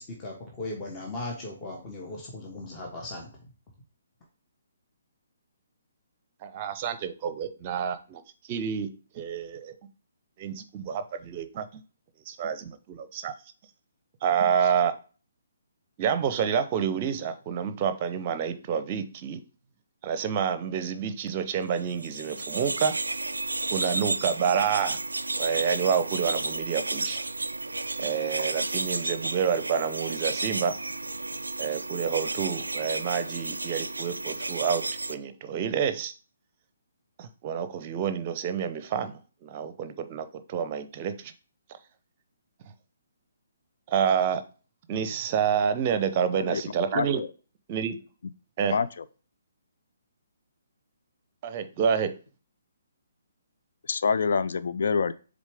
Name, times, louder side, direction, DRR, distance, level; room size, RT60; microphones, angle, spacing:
voice 1, 0.0-3.3, left 2 dB, 20° left, -1 dB, 1.2 m, -37 dB
voice 2, 6.4-8.2 8.5-8.9 9.1-9.7 10.4-11.6 12.3-13.3 14.2-14.9 16.0-19.4 20.0-23.0 23.7-25.0 25.4-27.2 28.0-30.7 31.6-34.8 35.1-36.1 37.2-41.3 43.9-44.4 44.9-47.2 47.7-48.0 48.6-48.8 51.4-52.1, right 7 dB, 30° right, 11 dB, 0.7 m, -28 dB
sound 1, 21.9-35.1, right 2 dB, 75° right, 0.4 m, -32 dB
voice 3, 46.9-47.3 48.7-49.0 53.9-55.1, left 5 dB, 55° left, 13 dB, 0.4 m, -26 dB
7.2 x 3.7 x 3.5 m, 0.37 s
figure-of-eight pair, 135°, 0 cm